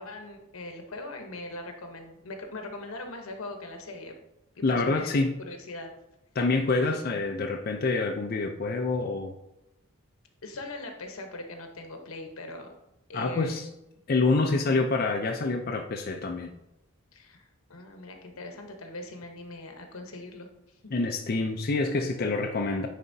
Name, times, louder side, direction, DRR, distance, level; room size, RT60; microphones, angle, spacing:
voice 1, 0.0-4.1 4.6-5.2 5.5-5.9 10.4-12.7 13.1-13.5 17.1-20.5 20.8-20.9, left 2 dB, 80° left, 4 dB, 1.0 m, -41 dB
voice 2, 4.6-5.4 6.4-9.3 13.1-13.7 14.1-16.5 20.9-22.9, left 3 dB, 45° left, 2 dB, 0.5 m, -27 dB
9.5 x 4.1 x 2.7 m, 0.88 s
head